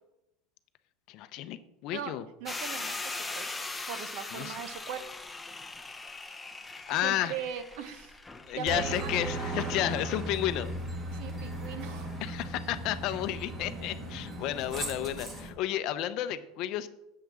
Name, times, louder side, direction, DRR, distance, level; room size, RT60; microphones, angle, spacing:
voice 1, 1.1-2.2 4.3-4.6 6.9-7.3 8.5-10.7 12.2-16.9, left 12 dB, 45° left, 12 dB, 0.6 m, -32 dB
voice 2, 1.9-3.5 3.9-5.0 7.0-8.1 8.5-9.1 11.1-12.1, right 8 dB, 60° right, 11 dB, 1.0 m, -39 dB
sound 1, 2.5-12.1, left 3 dB, 10° left, 0.7 m, -41 dB
Aircraft, 8.7-15.5, right 1 dB, 20° right, 2.0 m, -37 dB
7.5 x 5.8 x 7.2 m, 0.88 s
supercardioid pair, 160°, 0 cm